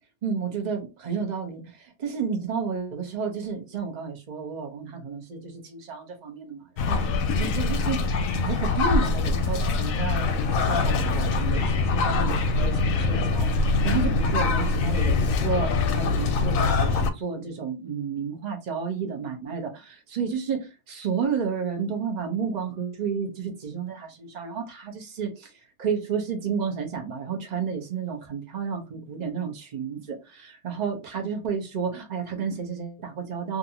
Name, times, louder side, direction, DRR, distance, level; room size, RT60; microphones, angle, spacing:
voice 1, 0.2-25.5 25.8-33.6, right 6 dB, 40° right, 0.6 m, -31 dB
sound 1, 6.8-17.1, left 3 dB, 70° left, 0.9 m, -23 dB
2.6 x 2.6 x 2.7 m
omnidirectional pair, 1.6 m